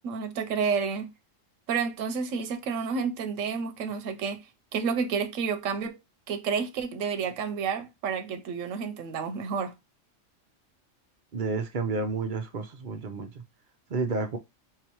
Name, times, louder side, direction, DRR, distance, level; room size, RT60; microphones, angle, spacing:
voice 1, 0.0-1.1 1.7-4.4 4.7-6.0 6.3-9.7, right 6 dB, 85° right, 1.0 m, -30 dB
voice 2, 11.3-13.3 13.9-14.4, right 4 dB, 45° right, 0.7 m, -30 dB
4.6 x 2.4 x 2.9 m
omnidirectional pair, 1.3 m